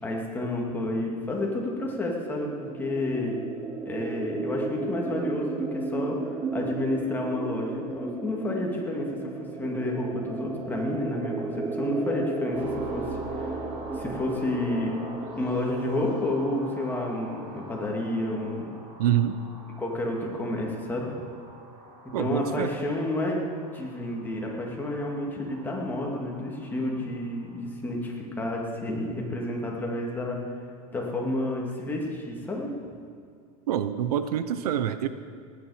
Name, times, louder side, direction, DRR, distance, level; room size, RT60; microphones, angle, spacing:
voice 1, 0.0-3.3 3.9-9.3 9.6-13.0 13.3-13.5 14.0-14.9 15.4-18.7 19.8-21.1 22.2-23.4 23.7-30.4 30.9-32.7, left 1 dB, 10° left, -2 dB, 2.4 m, -30 dB
sound 1, 2.1-17.7, right 3 dB, 10° right, 0.8 m, -35 dB
sound 2, 12.5-27.6, right 1 dB, 60° right, 4.1 m, -45 dB
voice 2, 19.0-19.4 22.1-22.7 33.7-35.1, right 10 dB, 85° right, 12 dB, 0.8 m, -26 dB
18.5 x 9.7 x 5.0 m, 2.3 s
supercardioid pair, 140°, 19 cm